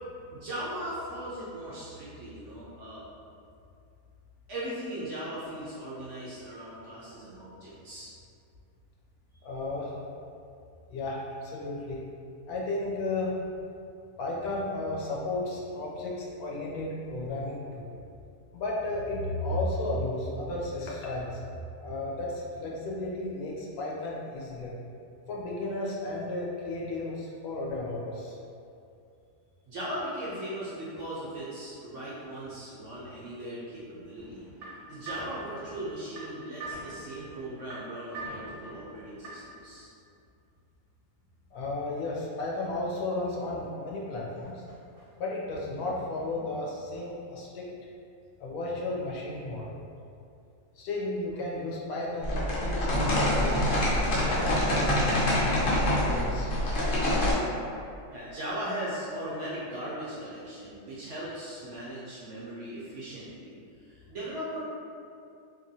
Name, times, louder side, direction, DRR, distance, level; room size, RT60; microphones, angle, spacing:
voice 1, 0.3-3.0 4.5-8.1 29.7-34.5 34.9-39.9 45.0-45.1 58.1-63.5 63.8-64.6, right 1 dB, 65° right, -9 dB, 0.7 m, -38 dB
voice 2, 9.4-9.9 10.9-12.0 12.5-13.4 14.2-17.9 18.5-21.4 21.8-24.7 25.3-28.4 41.5-44.6 45.2-47.7 48.4-49.8 50.8-53.6 54.1-55.5 55.8-56.5, left 2 dB, 75° left, -4 dB, 1.0 m, -33 dB
sound 1, 34.2-39.6, right 2 dB, 90° right, 1.2 m, -43 dB
sound 2, 52.2-57.3, left 1 dB, 55° left, 0.6 m, -25 dB
3.0 x 2.5 x 2.6 m, 2.5 s
omnidirectional pair, 1.7 m